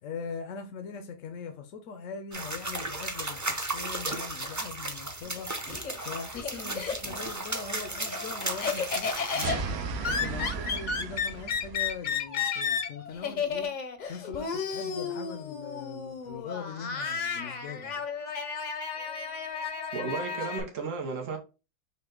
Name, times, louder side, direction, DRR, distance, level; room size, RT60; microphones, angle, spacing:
voice 1, 0.0-5.7 5.9-9.7 10.1-13.7 14.1-18.0, left 5 dB, 85° left, 1.0 m, -41 dB
sound 1, 2.3-9.5, right 2 dB, 20° right, 0.5 m, -35 dB
Laughter, 5.2-7.3 7.7-20.6, left 6 dB, 50° left, 0.6 m, -33 dB
sound 2, 9.4-12.0, right 5 dB, 65° right, 0.8 m, -35 dB
voice 2, 19.9-21.4, right 4 dB, 85° right, 1.2 m, -34 dB
5.5 x 2.2 x 3.7 m
omnidirectional pair, 1.3 m